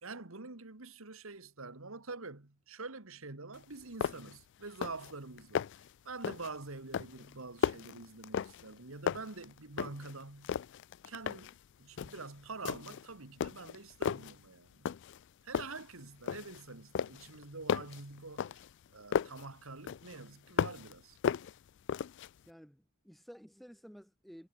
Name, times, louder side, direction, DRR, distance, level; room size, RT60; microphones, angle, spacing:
voice 1, 0.0-5.7 6.1-10.6 11.1-14.9 15.4-18.6 18.9-21.2, right 3 dB, 75° right, 2.0 m, -46 dB
sound 1, 3.6-3.7 4.0-4.4 4.7-5.1 5.4-5.9 6.2-6.6 6.9-8.8 9.1-10.1 10.4-11.6 12.0-12.3 12.7-13.1 13.4-14.4 14.9-15.2 15.5-16.6 17.0-19.5 19.9-20.9 21.2-22.3, left 7 dB, 55° left, 0.3 m, -35 dB
voice 2, 22.5-24.5, equal, ahead, 0.8 m, -53 dB
head